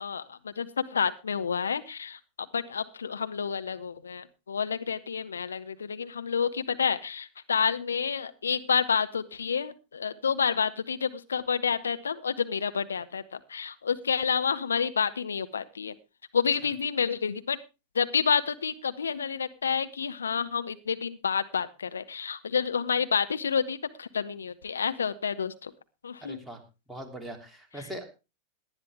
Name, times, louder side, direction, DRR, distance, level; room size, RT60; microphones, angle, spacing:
voice 1, 0.0-15.9 16.3-17.6 17.9-25.7 26.0-26.4, left 6 dB, 70° left, 11 dB, 0.9 m, -29 dB
voice 2, 26.2-26.6 26.9-28.1, right 1 dB, 5° right, 1 dB, 2.9 m, -41 dB
18.0 x 11.0 x 3.5 m, 0.30 s
figure-of-eight pair, 90°, 0 cm